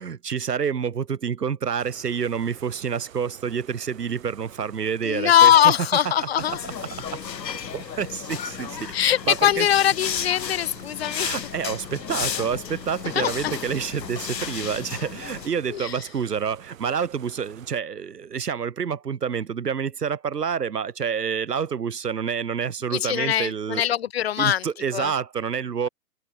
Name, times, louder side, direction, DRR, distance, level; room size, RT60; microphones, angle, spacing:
voice 1, 0.0-5.7 6.2-6.6 7.7-8.9 9.3-9.7 11.1-23.8 24.4-25.9, right 7 dB, 70° right, 1.9 m, -28 dB
sound 1, 1.8-17.8, right 10 dB, 55° right, 7.7 m, -48 dB
voice 2, 5.0-6.6 8.9-11.3 13.1-13.3 15.7-16.0 22.9-24.6 24.9-25.1, left 10 dB, 40° left, 0.8 m, -21 dB
sound 2, 6.4-15.5, left 8 dB, 85° left, 0.8 m, -33 dB
figure-of-eight pair, 125°, 49 cm